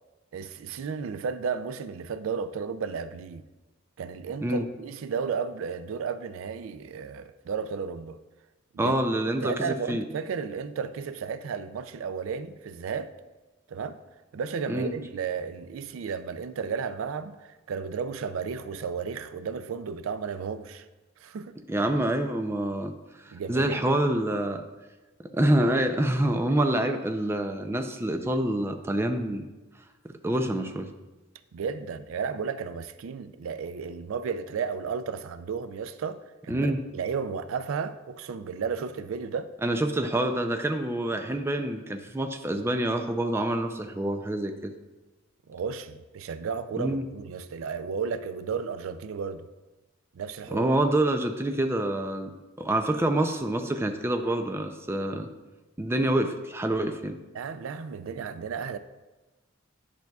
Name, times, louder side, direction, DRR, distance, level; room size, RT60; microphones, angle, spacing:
voice 1, 0.3-3.4 4.0-8.2 8.7-8.9 9.4-13.1 13.7-14.0 14.3-20.9 21.2-21.5 23.3-24.0 31.5-39.5 45.5-49.5 50.1-50.7 57.3-58.8, right 6 dB, 85° right, 0.4 m, -33 dB
voice 2, 8.8-10.0 14.7-14.9 21.7-22.9 23.2-24.6 25.3-29.4 30.0-30.9 36.5-36.8 39.6-44.7 46.7-47.0 50.5-52.3 52.6-55.3 55.8-57.2, right 1 dB, 10° right, 0.4 m, -26 dB
10.5 x 5.9 x 2.3 m
head